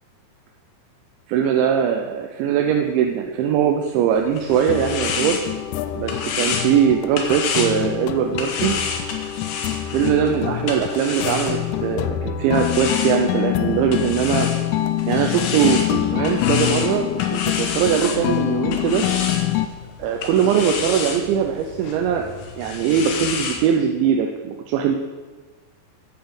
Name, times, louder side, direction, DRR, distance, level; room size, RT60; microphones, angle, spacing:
voice 1, 1.3-5.4 5.9-8.8 9.9-14.5 15.1-19.0 20.0-22.3 22.6-25.0, right 8 dB, 85° right, 3 dB, 3.1 m, -21 dB
sound 1, 4.1-12.0 12.5-23.6, left 5 dB, 70° left, 2.9 m, -30 dB
sound 2, 4.5-19.7, left 14 dB, 85° left, 2.2 m, -25 dB
10.0 x 9.3 x 7.0 m, 1.3 s
omnidirectional pair, 5.1 m